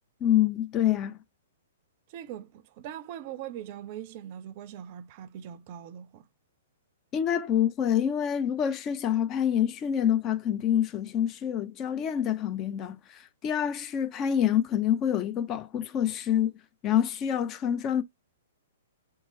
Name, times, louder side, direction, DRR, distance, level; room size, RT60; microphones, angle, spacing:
voice 1, 0.2-1.2 7.1-16.5 16.8-18.0, left 10 dB, 25° left, 0.4 m, -26 dB
voice 2, 2.1-6.2, right 10 dB, 40° right, 0.4 m, -41 dB
3.5 x 2.9 x 2.7 m
figure-of-eight pair, 110°, 0 cm